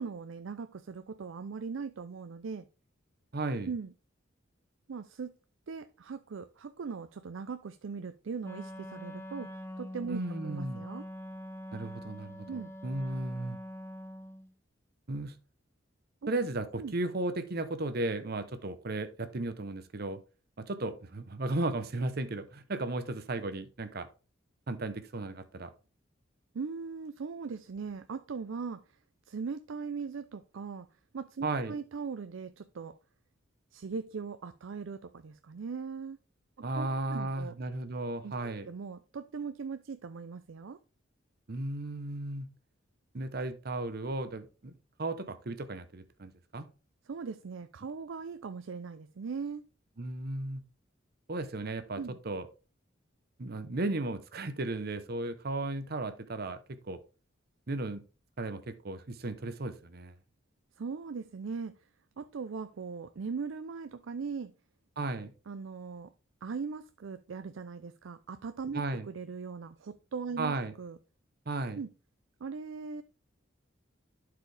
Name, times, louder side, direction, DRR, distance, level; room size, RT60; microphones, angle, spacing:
voice 1, 0.0-2.7 3.6-3.9 4.9-5.3 5.7-9.5 9.8-11.1 12.5-12.7 16.2-16.3 16.8-16.9 26.5-28.8 29.3-30.9 31.1-33.0 33.7-36.2 36.7-37.5 38.2-40.8 47.1-49.6 52.0-52.2 60.8-61.7 62.2-64.5 65.5-66.1 66.4-71.0 71.8-71.9 72.4-73.0, right 5 dB, 75° right, 11 dB, 0.5 m, -39 dB
voice 2, 3.3-3.7 10.1-10.8 11.7-13.6 15.1-15.3 16.3-20.2 20.6-24.1 24.7-25.7 31.4-31.7 36.6-38.7 41.5-42.5 43.1-44.7 45.0-46.7 50.0-50.6 51.3-52.0 52.2-52.5 53.4-57.0 57.7-58.0 58.4-60.1 65.0-65.3 68.7-69.1 70.4-70.7 71.5-71.8, right 2 dB, 50° right, 10 dB, 0.8 m, -35 dB
Wind instrument woodwind instrument, 8.4-14.5, equal, 15° left, 0.7 m, -44 dB
11.5 x 4.9 x 3.3 m, 0.34 s
head